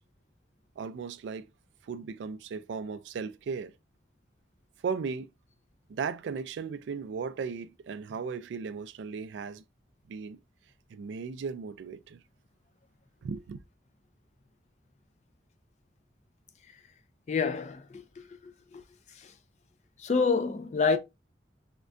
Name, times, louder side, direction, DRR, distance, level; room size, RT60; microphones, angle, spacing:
voice 1, 0.8-1.5 1.8-3.7 4.8-5.3 5.9-9.6 10.1-10.4 10.9-12.2 13.2-13.6, right 5 dB, 80° right, 0.3 m, -36 dB
voice 2, 17.3-18.3 18.7-18.8 19.2-19.3 20.0-21.0, left 5 dB, 40° left, 0.3 m, -28 dB
3.6 x 2.1 x 2.4 m
head